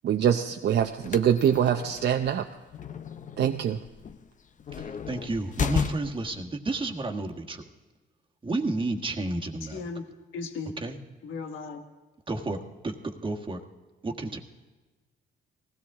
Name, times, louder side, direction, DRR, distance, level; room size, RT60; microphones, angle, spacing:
voice 1, 0.0-2.4 3.4-3.8, right 9 dB, 60° right, 4 dB, 0.7 m, -24 dB
sound 1, 0.8-6.4, left 7 dB, 40° left, 0.7 m, -35 dB
voice 2, 4.8-7.6 8.4-9.8 10.8-11.0 12.3-13.6 14.0-14.4, right 2 dB, 25° right, 3 dB, 1.5 m, -31 dB
voice 3, 9.7-10.0 10.3-10.7 11.2-11.8, left 4 dB, 80° left, 5 dB, 1.4 m, -36 dB
19.5 x 16.0 x 3.6 m, 1.2 s
cardioid pair, 90°, 20 cm